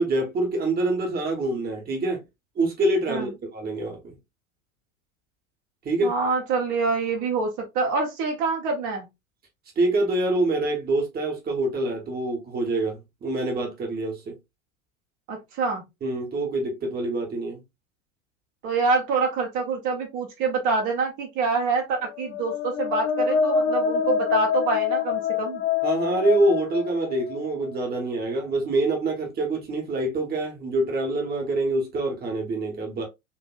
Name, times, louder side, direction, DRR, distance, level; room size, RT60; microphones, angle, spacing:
voice 1, 0.0-2.2 2.5-4.1 5.8-6.1 9.8-14.4 16.0-17.6 25.8-33.1, right 2 dB, 20° right, 1.3 m, -25 dB
voice 2, 6.0-9.1 15.3-15.8 18.6-25.6, right 4 dB, 45° right, 1.3 m, -26 dB
sound 1, 22.1-27.9, left 6 dB, 30° left, 0.6 m, -26 dB
4.1 x 3.0 x 2.4 m
figure-of-eight pair, 85°, 42 cm